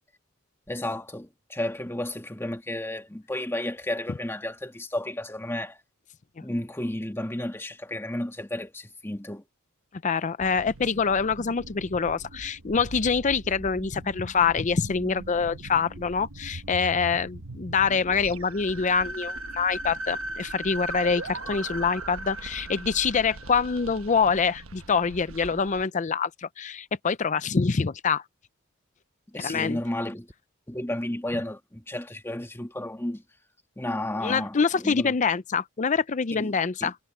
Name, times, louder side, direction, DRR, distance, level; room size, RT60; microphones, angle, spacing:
voice 1, 0.7-5.8 6.4-9.4 29.3-30.3 30.7-33.2 33.8-35.1 36.3-36.5 36.8-36.9, left 1 dB, 10° left, 1.6 m, -32 dB
voice 2, 10.0-28.2 29.4-29.8 34.2-37.0, left 5 dB, 35° left, 0.5 m, -25 dB
sound 1, 10.4-25.8, right 2 dB, 90° right, 1.2 m, -39 dB
head